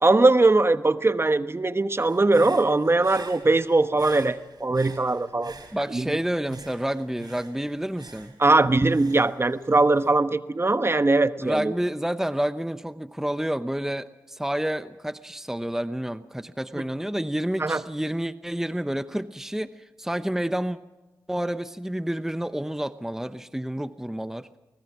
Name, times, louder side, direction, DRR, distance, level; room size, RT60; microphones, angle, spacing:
voice 1, 0.0-5.5 5.9-6.1 8.4-11.7 16.7-16.8 17.6-17.8, right 2 dB, 30° right, 12 dB, 1.1 m, -21 dB
Human voice / Breathing, 2.0-6.1 6.5-10.1, right 4 dB, 60° right, 4.4 m, -46 dB
voice 2, 5.7-8.3 11.4-20.8 21.3-24.5, right 1 dB, 5° right, 12 dB, 0.9 m, -29 dB
24.5 x 20.0 x 6.1 m, 1.1 s
supercardioid pair, 40°, 8 cm